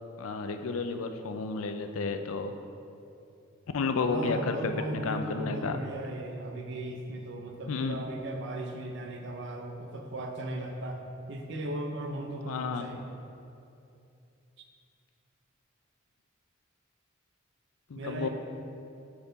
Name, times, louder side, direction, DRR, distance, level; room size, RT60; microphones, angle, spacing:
voice 1, 0.2-2.5 3.7-5.8 7.7-8.0 12.5-12.9 17.9-18.3, left 4 dB, 85° left, 7 dB, 0.5 m, -31 dB
voice 2, 4.1-11.0 11.3-13.0 17.9-18.3, right 1 dB, 60° right, 3 dB, 0.7 m, -37 dB
8.5 x 4.4 x 4.0 m, 2.6 s
head